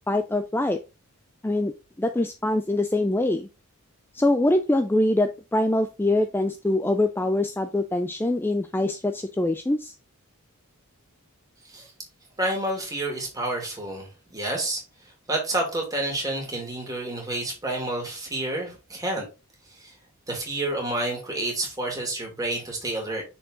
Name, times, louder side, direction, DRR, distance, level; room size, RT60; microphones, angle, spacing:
voice 1, 0.1-0.8 1.4-1.7 2.0-3.5 4.1-9.9, left 1 dB, 10° left, 8 dB, 0.3 m, -24 dB
voice 2, 12.4-14.8 15.3-19.3 19.8-19.9 20.3-23.2, right 1 dB, 15° right, 0 dB, 2.5 m, -29 dB
6.4 x 4.6 x 3.7 m, 0.28 s
head